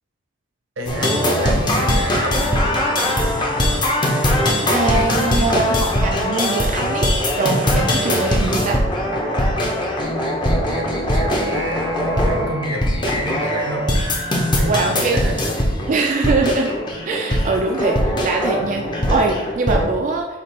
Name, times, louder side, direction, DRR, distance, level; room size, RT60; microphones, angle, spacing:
voice 1, 0.8-3.9 10.7-14.1 14.6-15.6, equal, 80° right, 2 dB, 0.9 m, -30 dB
sound 1, 0.9-19.9, equal, 25° left, 0.7 m, -20 dB
voice 2, 4.7-7.1 7.4-8.9 14.6-15.2 15.9-16.7 17.0-20.3, right 3 dB, 40° right, 1 dB, 0.3 m, -22 dB
5.1 x 2.4 x 4.3 m, 1.1 s
head